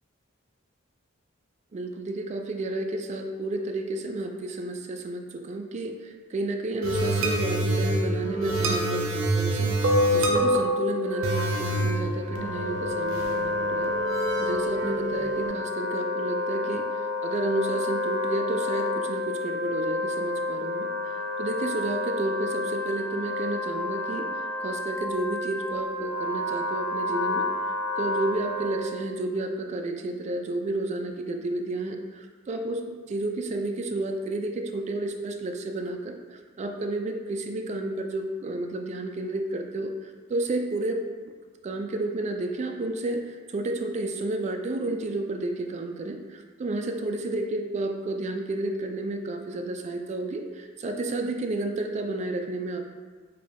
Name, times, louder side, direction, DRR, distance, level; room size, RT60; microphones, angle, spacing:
voice 1, 1.7-9.7 10.1-16.9 17.2-24.3 24.6-27.5 28.0-41.0 41.6-52.9, right 2 dB, 35° right, 4 dB, 0.3 m, -31 dB
sound 1, 6.8-15.5, right 1 dB, 90° right, 0.5 m, -26 dB
Wind instrument woodwind instrument, 10.9-29.1, left 2 dB, 20° left, 1.1 m, -30 dB
5.1 x 2.2 x 2.8 m, 1.4 s
head